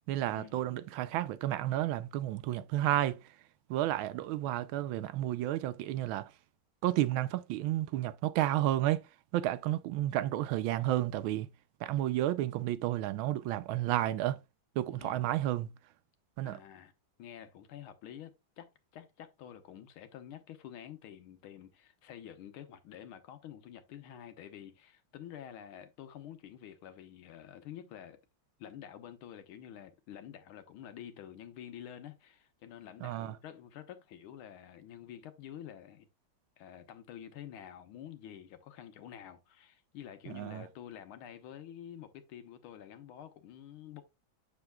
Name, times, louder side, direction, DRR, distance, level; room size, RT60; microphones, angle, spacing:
voice 1, 0.1-3.2 3.7-6.3 6.8-9.0 9.3-11.5 11.8-14.4 14.8-15.7 16.4-16.6 33.0-33.4 40.3-40.6, right 14 dB, 80° right, 1.4 m, -31 dB
voice 2, 14.9-15.2 16.4-16.9 17.2-28.2 28.6-36.1 36.6-44.0, left 10 dB, 90° left, 1.8 m, -49 dB
7.2 x 6.8 x 2.2 m
omnidirectional pair, 2.3 m